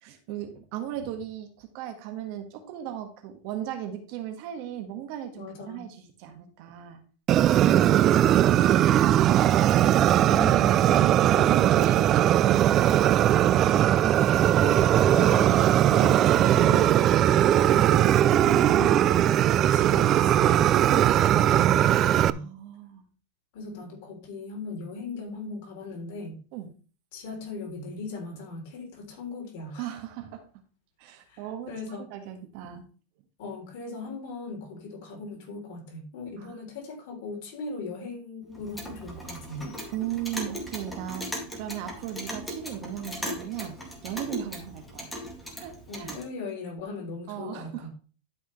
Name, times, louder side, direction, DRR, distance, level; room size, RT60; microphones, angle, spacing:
voice 1, 0.0-7.0 7.7-9.5 10.5-13.7 15.8-16.0 22.3-23.0 26.5-26.7 29.8-30.4 31.0-32.8 36.4-36.6 39.9-43.8 44.0-45.1 45.6-46.2 47.3-47.9, right 10 dB, 55° right, 6 dB, 1.6 m, -37 dB
voice 2, 5.3-5.9 7.6-8.3 10.2-11.1 14.5-19.4 19.7-22.5 23.5-26.3 27.1-29.9 31.3-32.1 33.4-39.8 45.9-47.9, left 3 dB, 60° left, 0 dB, 3.4 m, -38 dB
Fire, 7.3-22.3, right 11 dB, 35° right, 0.3 m, -20 dB
Clock, 38.5-46.3, equal, 5° left, 2.2 m, -38 dB
12.0 x 5.5 x 3.2 m, 0.38 s
supercardioid pair, 140°, 0 cm